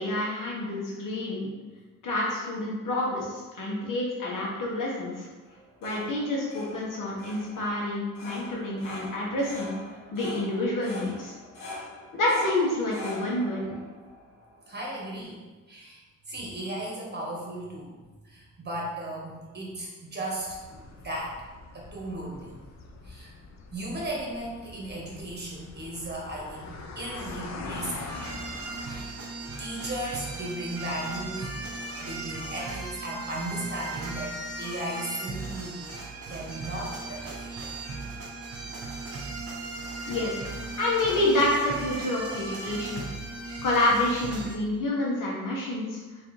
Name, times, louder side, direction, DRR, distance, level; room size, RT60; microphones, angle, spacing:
voice 1, 0.0-1.5 2.0-5.3 5.8-9.7 10.1-11.3 12.1-13.7 40.1-40.4 40.8-43.0 43.6-46.0, left 1 dB, 75° left, -4 dB, 1.3 m, -28 dB
sound 1, 5.5-15.2, left 2 dB, 90° left, 1.1 m, -44 dB
voice 2, 14.7-15.4 15.7-17.9 18.2-21.4 21.7-22.6 23.0-23.3 23.7-28.1 28.8-29.1 29.6-31.5 32.0-35.9 36.3-37.5, right 1 dB, 30° right, -3 dB, 1.4 m, -36 dB
sound 2, 20.5-29.0, left 3 dB, 55° left, 0.6 m, -43 dB
sound 3, 28.1-44.6, right 2 dB, 45° right, 0.8 m, -37 dB
3.7 x 3.1 x 3.2 m, 1.3 s
cardioid pair, 70°, 32 cm